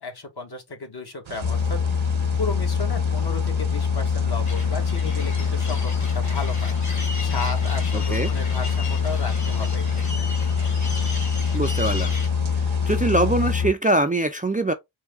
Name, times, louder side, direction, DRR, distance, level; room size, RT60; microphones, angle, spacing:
voice 1, 0.0-1.8 2.4-6.7 7.2-10.3, left 3 dB, 55° left, 1.4 m, -34 dB
sound 1, 1.2-13.5, right 7 dB, 75° right, 0.8 m, -41 dB
sound 2, 1.4-13.7, left 6 dB, 75° left, 0.7 m, -24 dB
sound 3, 4.5-12.3, left 2 dB, 35° left, 1.5 m, -37 dB
voice 2, 7.9-8.3 11.5-12.1 12.9-14.7, right 2 dB, 20° right, 0.4 m, -22 dB
4.7 x 2.3 x 3.5 m
wide cardioid pair, 60°, 48 cm